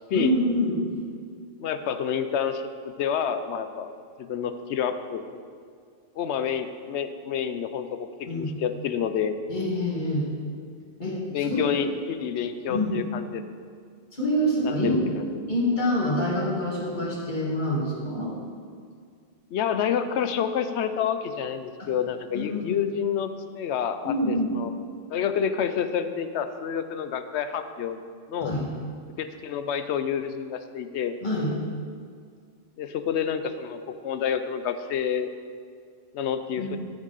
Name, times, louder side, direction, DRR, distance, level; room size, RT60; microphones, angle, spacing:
voice 1, 0.1-0.8 8.3-8.5 9.5-10.3 11.0-11.7 12.7-13.0 14.1-15.0 15.5-18.3 22.3-22.8 24.0-24.5 28.4-28.7 31.2-31.5 36.6-36.7, left 1 dB, 45° left, -4 dB, 2.0 m, -26 dB
voice 2, 1.6-3.9 4.2-5.3 6.2-9.4 11.3-13.4 14.6-15.4 19.5-24.7 25.1-28.0 28.3-28.5 29.2-31.2 32.8-35.3 36.1-36.8, left 8 dB, 90° left, 10 dB, 0.9 m, -28 dB
13.5 x 6.2 x 4.0 m, 2.1 s
omnidirectional pair, 1.1 m